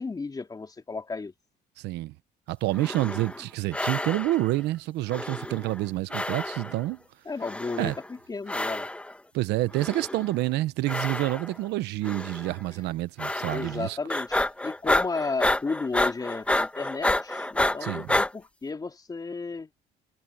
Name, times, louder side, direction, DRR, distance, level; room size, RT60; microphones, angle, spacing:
voice 1, 0.0-1.3 7.2-8.9 13.4-19.7, left 4 dB, 20° left, 3.3 m, -33 dB
voice 2, 1.8-2.1 2.5-7.0 7.8-7.9 9.3-14.0 17.8-18.2, right 17 dB, 85° right, 0.9 m, -28 dB
sound 1, 2.7-3.4 3.7-4.5 5.1-5.9 6.1-6.9 7.4-8.1 8.5-9.1 9.7-10.4 10.9-11.6 12.0-12.5 13.2-13.8 14.1-18.3, left 1 dB, 5° left, 1.4 m, -29 dB
cardioid pair, 110°, 17 cm